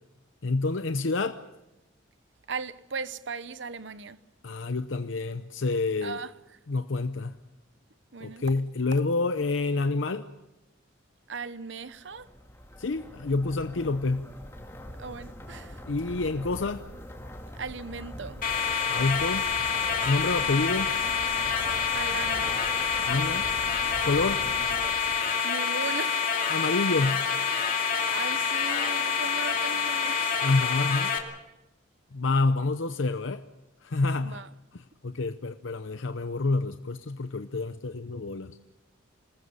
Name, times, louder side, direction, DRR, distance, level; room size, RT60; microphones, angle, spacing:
voice 1, 0.4-1.4 4.4-6.3 6.7-7.4 8.2-10.3 12.8-14.3 15.9-16.8 18.9-19.5 20.0-20.9 23.0-23.5 24.0-24.4 26.5-27.3 30.4-31.1 32.1-33.4 33.8-34.4 34.7-38.6, left 3 dB, 70° left, 0.7 m, -28 dB
voice 2, 2.5-4.2 6.0-6.3 8.1-8.4 11.3-12.3 15.0-15.8 17.5-18.4 20.4-20.6 21.9-22.6 25.4-26.3 27.8-30.4 34.2-34.5, right 5 dB, 65° right, 0.9 m, -38 dB
sound 1, 11.9-25.4, equal, 15° left, 2.7 m, -43 dB
sound 2, 18.4-31.2, left 6 dB, 45° left, 2.5 m, -27 dB
28.0 x 19.5 x 5.6 m
head